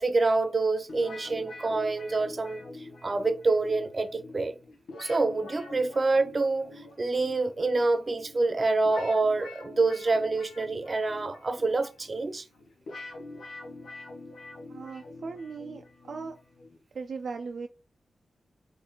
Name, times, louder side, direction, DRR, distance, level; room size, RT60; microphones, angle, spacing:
voice 1, 0.0-4.5 5.0-12.4, right 3 dB, 50° right, 0.8 m, -27 dB
sound 1, 0.9-16.8, left 2 dB, 90° left, 1.0 m, -46 dB
voice 2, 14.7-16.3 16.9-17.7, right 4 dB, 75° right, 0.4 m, -38 dB
4.3 x 3.2 x 3.8 m
cardioid pair, 45°, 0 cm